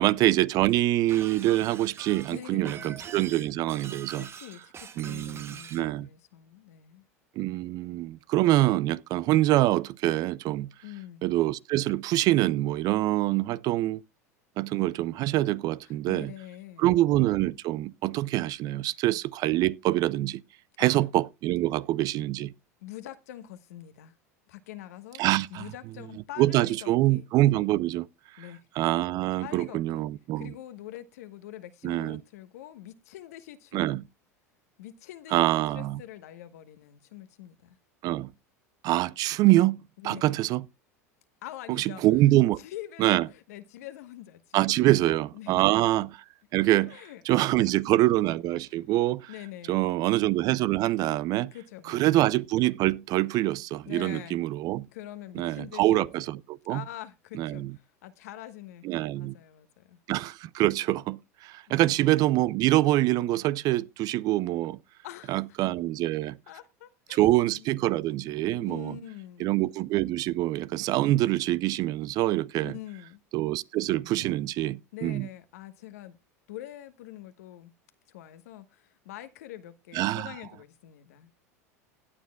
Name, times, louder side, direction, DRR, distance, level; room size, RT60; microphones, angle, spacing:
voice 1, 0.0-4.3 5.0-6.1 7.4-10.7 11.2-14.0 14.6-16.3 16.8-20.4 20.8-22.5 25.2-25.6 26.4-28.1 28.8-30.5 31.8-32.2 33.7-34.0 35.3-36.0 38.0-38.3 38.8-40.6 41.7-42.6 43.0-43.3 44.5-46.2 46.5-47.0 47.3-49.3 49.7-51.5 51.9-54.9 55.4-56.8 57.4-57.7 58.8-59.3 60.1-64.8 65.3-66.4 67.1-68.9 69.4-72.7 73.3-75.3 79.9-80.3, right 16 dB, 50° right, 0.5 m, -25 dB
Shatter, 1.1-5.9, right 7 dB, 30° right, 0.9 m, -44 dB
voice 2, 2.3-3.0 4.1-7.0 10.8-11.3 15.8-16.9 20.8-21.1 22.8-24.1 24.5-25.2 25.5-27.2 28.4-28.6 29.4-30.0 30.4-34.0 34.8-37.8 40.0-40.4 41.4-42.0 42.6-45.0 45.3-45.7 46.5-47.2 47.6-47.8 48.7-48.9 49.3-50.0 51.5-52.2 53.9-54.4 54.9-56.3 56.7-58.8 59.1-60.0 65.0-65.6 66.5-67.7 68.4-69.6 72.6-73.2 74.9-76.2 76.5-77.7 78.1-81.3, left 13 dB, 70° left, 1.2 m, -45 dB
17.0 x 9.3 x 2.3 m
hypercardioid pair, 85°, 9 cm